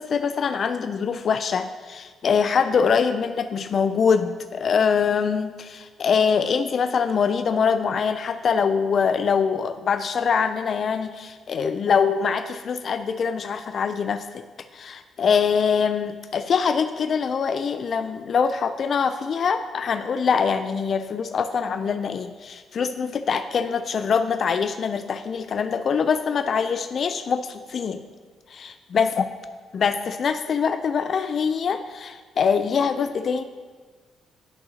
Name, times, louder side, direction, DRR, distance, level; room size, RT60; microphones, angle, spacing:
voice 1, 0.0-14.4 14.7-28.0 28.5-29.2 29.7-33.4, left 6 dB, 55° left, 9 dB, 0.3 m, -23 dB
10.5 x 5.6 x 2.8 m, 1.5 s
cardioid pair, 90°, 0 cm